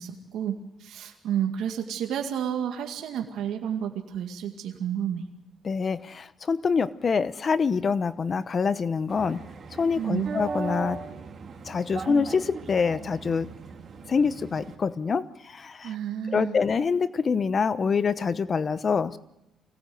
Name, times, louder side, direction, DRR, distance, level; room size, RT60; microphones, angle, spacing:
voice 1, 0.0-5.3 9.9-10.3 15.8-16.6, right 9 dB, 80° right, 3 dB, 2.2 m, -31 dB
voice 2, 5.6-9.4 9.7-11.0 11.7-13.5 14.1-15.9 16.3-19.2, left 5 dB, 40° left, 15 dB, 0.9 m, -26 dB
sound 1, 9.1-14.7, right 5 dB, 50° right, 3.7 m, -38 dB
25.0 x 18.0 x 7.9 m, 0.88 s
cardioid pair, 90°, 0 cm